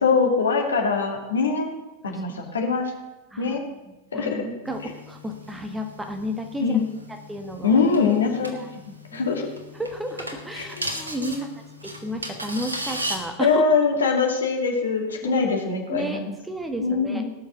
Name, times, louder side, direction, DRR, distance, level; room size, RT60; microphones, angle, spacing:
voice 1, 0.0-1.7 2.0-2.9 3.4-3.7 4.1-4.4 6.6-6.9 7.6-8.6 9.1-9.5 10.5-10.8 11.2-11.4 13.4-16.3 16.8-17.2, left 5 dB, 70° left, 2 dB, 2.4 m, -23 dB
voice 2, 2.0-2.7 3.3-3.7 4.1-6.8 7.3-7.8 8.5-8.7 9.1-9.2 9.8-11.5 11.8-13.6 15.2-15.4 15.9-17.2, equal, 10° right, 6 dB, 1.5 m, -33 dB
sound 1, 4.6-13.2, equal, 80° right, 1.6 m, -37 dB
17.5 x 6.4 x 7.1 m, 1.1 s
figure-of-eight pair, 90°, 0 cm